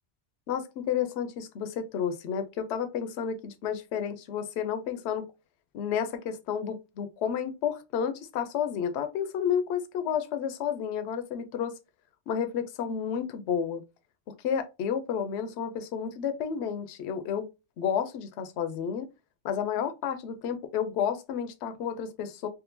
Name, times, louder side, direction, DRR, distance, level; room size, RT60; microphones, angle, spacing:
voice 1, 0.5-5.3 5.7-11.7 12.3-13.8 14.4-17.5 17.8-19.1 19.4-22.5, left 8 dB, 70° left, 0.8 m, -31 dB
3.7 x 2.4 x 2.5 m
omnidirectional pair, 1.2 m